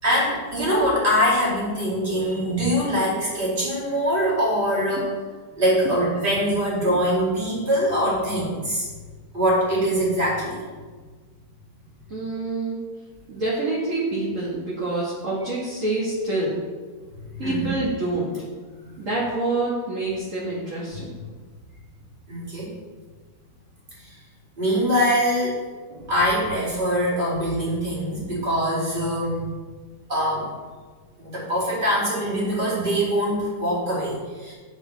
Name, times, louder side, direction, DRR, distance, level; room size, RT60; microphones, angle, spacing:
voice 1, 0.0-5.1 5.5-8.9 9.3-10.6 17.3-17.7 18.8-18.9 22.3-22.7 24.0-24.2 24.6-25.6 25.9-29.4 30.1-30.5 31.2-34.5, equal, 30° right, -7 dB, 2.6 m, -23 dB
voice 2, 12.1-12.8 13.3-16.6 17.4-18.3 19.0-21.2, right 2 dB, 45° right, -7 dB, 1.9 m, -26 dB
9.2 x 6.7 x 3.4 m, 1.5 s
omnidirectional pair, 1.9 m